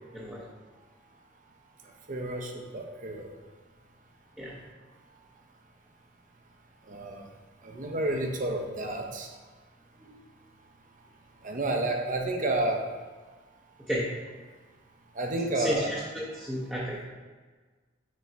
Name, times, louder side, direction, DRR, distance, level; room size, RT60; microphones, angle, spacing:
voice 1, 2.1-3.3 6.9-7.3 7.6-9.3 11.4-12.8 15.2-16.1, right 2 dB, 45° right, 2 dB, 0.7 m, -30 dB
voice 2, 15.6-17.1, equal, 5° right, -6 dB, 0.7 m, -32 dB
6.3 x 3.7 x 4.4 m, 1.4 s
head